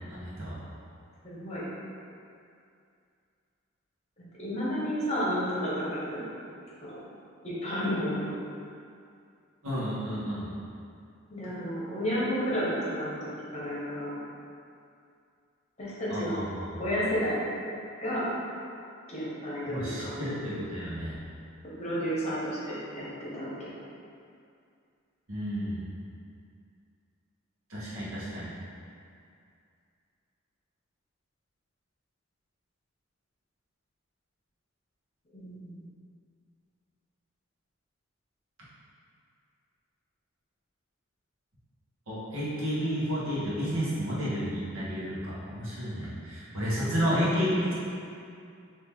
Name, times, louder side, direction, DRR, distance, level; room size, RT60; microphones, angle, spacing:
voice 1, 0.1-0.6 9.6-10.5 16.1-16.8 19.6-21.1 25.3-25.8 27.7-28.5 42.1-47.7, equal, 80° right, -9 dB, 1.3 m, -31 dB
voice 2, 1.2-1.6 4.4-6.2 6.8-6.9 7.4-8.3 11.3-14.1 15.8-16.4 16.8-17.4 18.0-18.3 19.1-20.3 21.8-23.7 35.3-35.8 46.8-47.0, equal, 30° left, -8 dB, 1.1 m, -31 dB
4.3 x 2.9 x 3.6 m, 2.4 s
head